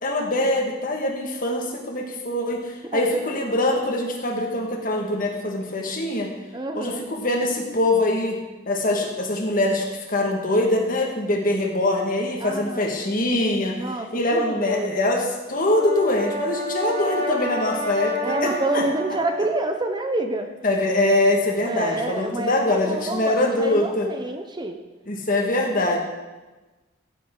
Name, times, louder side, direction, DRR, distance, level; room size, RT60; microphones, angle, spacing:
voice 1, 0.0-6.3 6.7-8.4 8.7-13.8 14.1-18.8 20.6-24.1 25.1-26.0, left 1 dB, 45° left, 1 dB, 1.7 m, -23 dB
voice 2, 6.5-7.0 12.4-13.2 13.7-15.1 18.2-20.5 21.6-24.8, right 2 dB, 25° right, 6 dB, 0.7 m, -28 dB
Brass instrument, 15.5-19.7, equal, 85° right, 2.8 m, -30 dB
16.0 x 7.5 x 3.8 m, 1.2 s
head